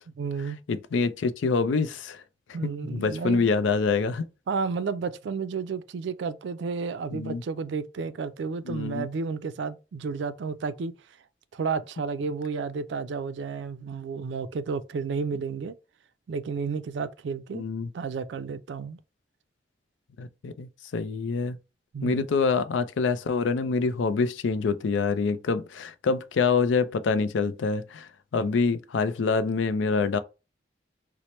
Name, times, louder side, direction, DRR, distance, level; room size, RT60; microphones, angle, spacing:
voice 1, 0.2-0.6 2.5-3.5 4.5-10.9 11.5-15.8 16.3-17.6 17.9-19.0 21.9-22.3, right 5 dB, 75° right, 0.3 m, -32 dB
voice 2, 0.7-2.2 2.6-4.2 7.1-7.4 8.7-9.1 17.5-17.9 20.2-21.6 22.0-30.2, left 4 dB, 90° left, 0.4 m, -26 dB
4.3 x 2.0 x 3.0 m
head